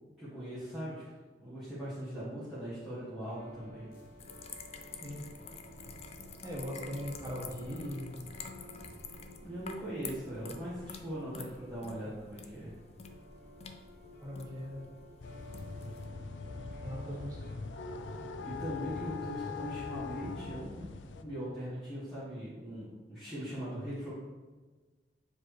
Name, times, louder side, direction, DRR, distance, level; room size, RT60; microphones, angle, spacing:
voice 1, 0.2-1.1 1.4-3.9 9.4-12.7 18.2-20.9 21.2-24.1, equal, ahead, -14 dB, 1.7 m, -40 dB
sound 1, 3.3-17.6, equal, 55° left, 0.9 m, -52 dB
sound 2, 4.2-16.1, left 5 dB, 35° left, 0.4 m, -49 dB
voice 2, 6.4-8.2 12.0-12.1 14.2-14.9 16.8-17.4, equal, 20° right, -3 dB, 1.3 m, -40 dB
sound 3, 15.2-21.2, left 4 dB, 90° left, 0.5 m, -42 dB
7.3 x 4.3 x 3.3 m, 1.3 s
head